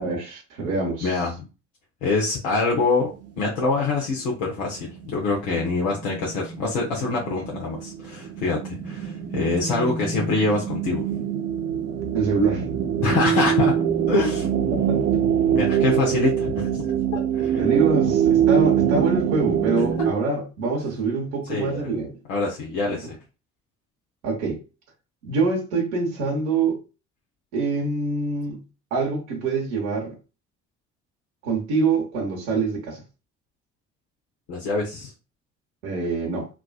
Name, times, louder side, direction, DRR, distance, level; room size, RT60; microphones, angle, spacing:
voice 1, 0.0-1.2 12.1-12.6 14.7-15.1 17.6-22.2 22.8-23.0 24.2-24.6 25.2-26.8 27.5-28.6 28.9-30.2 31.4-33.0 35.8-36.5, right 4 dB, 80° right, 1.0 m, -25 dB
voice 2, 1.0-1.3 2.0-3.1 3.4-11.1 13.0-13.8 14.1-14.5 15.5-17.6 18.0-18.1 21.5-21.9 22.3-23.1 34.5-35.1, left 3 dB, 75° left, 0.8 m, -25 dB
sound 1, 3.5-3.6 4.5-20.1, right 9 dB, 45° right, 0.6 m, -24 dB
3.5 x 2.4 x 2.3 m
hypercardioid pair, 50°, 35 cm